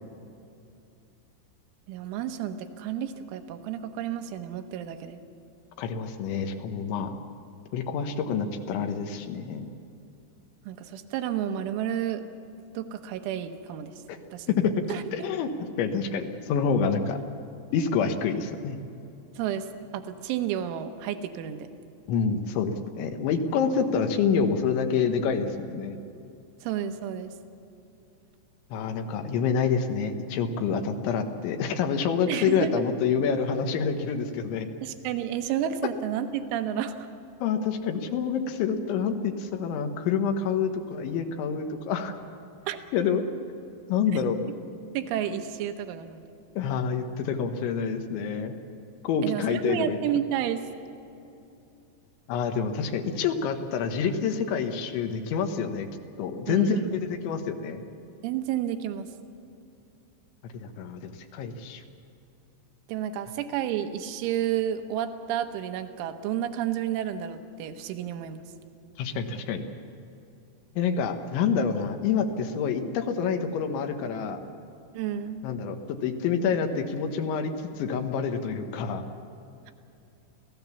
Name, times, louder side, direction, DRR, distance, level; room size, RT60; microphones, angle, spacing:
voice 1, 1.9-5.2 10.7-12.2 12.7-13.9 14.3-14.5 14.9-15.3 19.4-19.7 19.9-21.7 26.6-27.3 32.3-32.8 34.8-37.1 42.7-42.8 44.9-46.2 49.2-50.6 56.5-56.9 58.2-59.1 62.9-68.4 74.9-75.4, right 10 dB, 85° right, 8 dB, 3.5 m, -31 dB
voice 2, 5.8-7.2 7.7-9.7 14.1-14.2 14.5-14.7 15.1-15.5 15.8-17.2 17.7-18.8 22.1-26.0 28.7-34.7 37.4-42.1 42.9-43.2 43.9-44.4 46.6-48.5 49.0-50.0 52.3-55.9 56.2-57.8 60.4-61.8 69.0-69.6 70.8-74.4 75.4-79.0, left 6 dB, 75° left, 6 dB, 3.4 m, -27 dB
27.0 x 16.5 x 7.1 m, 2.7 s
omnidirectional pair, 5.5 m